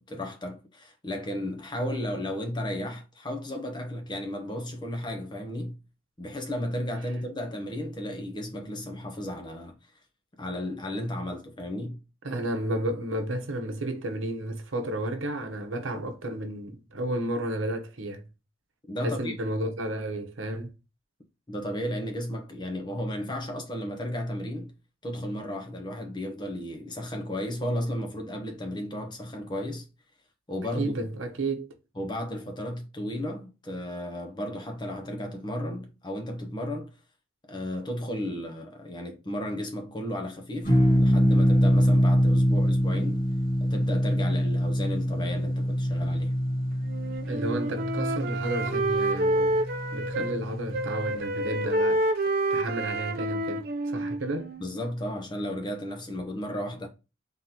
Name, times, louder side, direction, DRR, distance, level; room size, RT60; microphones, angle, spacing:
voice 1, 0.0-5.8 6.2-9.8 10.4-12.0 18.9-19.3 21.5-24.7 25.0-29.9 30.5-30.9 32.0-36.9 37.5-43.2 43.6-46.3 50.2-50.3 54.6-56.9, left 1 dB, 20° left, 0.8 m, -34 dB
voice 2, 12.2-18.2 19.0-20.7 30.8-31.7 47.3-49.6 49.9-52.0 52.5-54.5, right 1 dB, 80° right, 0.9 m, -32 dB
sound 1, 40.7-51.2, equal, 45° left, 1.7 m, -25 dB
Wind instrument woodwind instrument, 46.9-50.4 50.7-54.7, right 1 dB, 50° right, 0.5 m, -28 dB
3.8 x 3.7 x 2.8 m
head